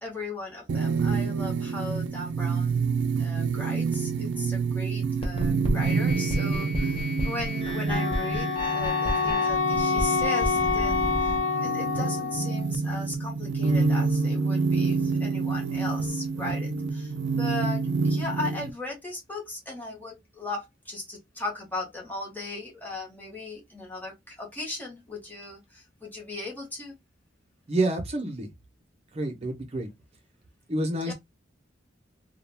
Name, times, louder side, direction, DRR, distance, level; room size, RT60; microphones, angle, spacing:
voice 1, 0.0-26.9 31.0-31.1, left 2 dB, 10° left, 0.9 m, -37 dB
sound 1, 0.7-18.7, right 4 dB, 70° right, 0.4 m, -28 dB
sound 2, 5.2-11.4, left 1 dB, 30° left, 0.6 m, -31 dB
Wind instrument woodwind instrument, 7.9-12.7, left 5 dB, 70° left, 0.3 m, -27 dB
voice 2, 27.7-28.5 29.1-29.9 30.7-31.1, right 2 dB, 35° right, 0.6 m, -28 dB
2.3 x 2.2 x 3.2 m
head